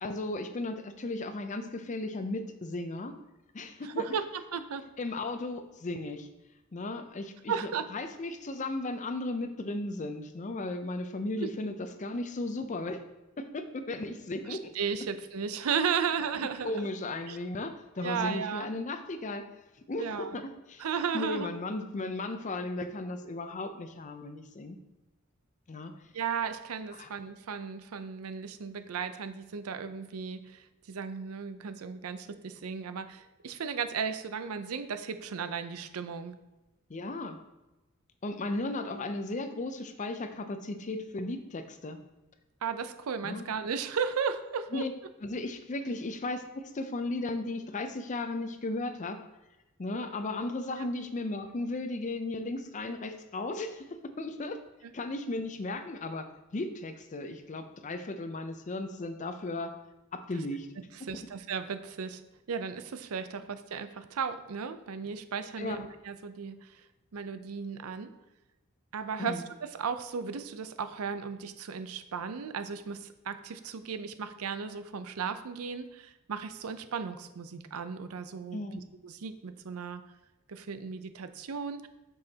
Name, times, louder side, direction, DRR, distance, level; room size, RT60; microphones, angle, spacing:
voice 1, 0.0-3.2 3.5-4.0 5.0-6.3 6.7-7.5 7.9-13.0 13.4-14.7 16.6-19.5 19.9-20.8 21.1-24.8 25.7-25.9 26.9-27.1 36.9-37.4 38.2-42.0 43.2-43.5 44.7-44.9 45.2-49.2 49.8-53.9 54.2-54.6 54.9-59.7 60.1-60.7 65.6-65.8 69.2-69.4 78.5-78.8, left 2 dB, 35° left, 8 dB, 0.5 m, -35 dB
voice 2, 3.8-4.8 7.5-7.9 11.4-11.5 14.5-16.9 17.3-17.4 18.0-18.7 20.0-20.4 20.8-21.5 26.1-36.3 42.6-44.9 50.8-50.9 54.8-54.9 60.9-62.2 62.5-66.8 67.1-68.1 68.9-80.0 80.5-81.9, right 6 dB, 85° right, 10 dB, 0.5 m, -35 dB
7.7 x 6.2 x 2.8 m, 1.0 s
head